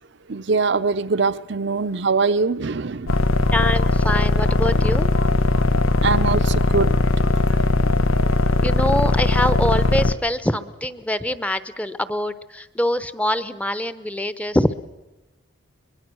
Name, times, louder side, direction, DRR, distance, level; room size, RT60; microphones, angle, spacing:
voice 1, 0.3-3.3 6.0-7.0, right 4 dB, 55° right, 0.7 m, -22 dB
sound 1, 3.1-10.1, left 2 dB, 85° left, 1.1 m, -19 dB
voice 2, 3.5-5.1 8.6-14.7, left 1 dB, 5° left, 0.8 m, -24 dB
23.5 x 22.0 x 6.2 m
head